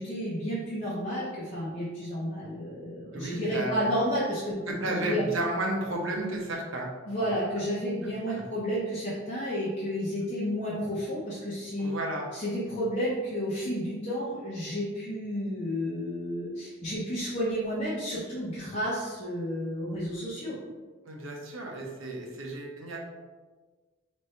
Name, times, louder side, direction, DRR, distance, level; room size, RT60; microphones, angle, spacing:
voice 1, 0.0-5.2 7.1-11.9 12.3-20.6, equal, 40° left, -10 dB, 0.8 m, -31 dB
voice 2, 3.1-3.9 4.7-6.9 7.2-7.3 8.3-8.4 11.8-12.2 21.0-23.0, right 1 dB, 85° right, -1 dB, 0.8 m, -33 dB
3.2 x 2.6 x 4.3 m, 1.3 s
head